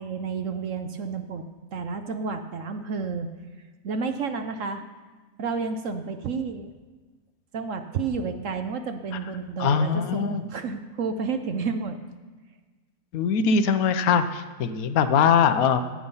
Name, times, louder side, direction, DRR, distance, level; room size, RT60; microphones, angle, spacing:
voice 1, 0.0-1.4 1.7-3.3 3.8-4.8 5.4-6.7 7.5-12.0, right 5 dB, 60° right, 8 dB, 0.9 m, -30 dB
voice 2, 9.6-10.4 13.1-15.8, left 6 dB, 65° left, 10 dB, 1.1 m, -22 dB
15.0 x 8.7 x 5.6 m, 1.3 s
omnidirectional pair, 1.9 m